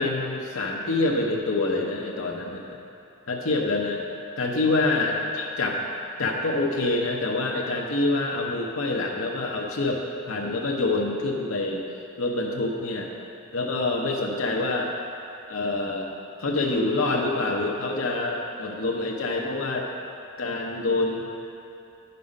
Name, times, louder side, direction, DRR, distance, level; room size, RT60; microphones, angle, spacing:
voice 1, 0.0-2.6 3.3-4.0 4.4-5.9 6.2-11.8 12.2-13.1 13.5-14.9 15.5-16.1 16.4-19.9 20.4-21.3, left 2 dB, 75° left, -1 dB, 0.8 m, -26 dB
9.7 x 5.5 x 5.3 m, 2.7 s
head